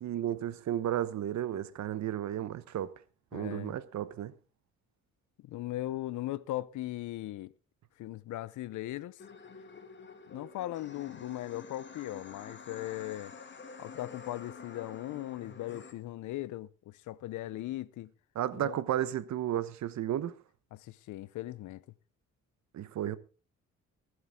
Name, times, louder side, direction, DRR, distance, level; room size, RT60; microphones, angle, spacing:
voice 1, 0.0-3.0 3.3-4.3 18.3-20.3 22.7-23.2, right 11 dB, 65° right, 1.0 m, -33 dB
voice 2, 3.3-3.7 5.4-7.5 8.0-9.2 10.3-13.3 13.8-18.1 18.5-18.8 20.7-21.8, left 15 dB, 75° left, 0.7 m, -38 dB
sound 1, 9.2-15.9, left 5 dB, 40° left, 1.9 m, -49 dB
22.5 x 8.0 x 3.6 m
cardioid pair, 90°, 30 cm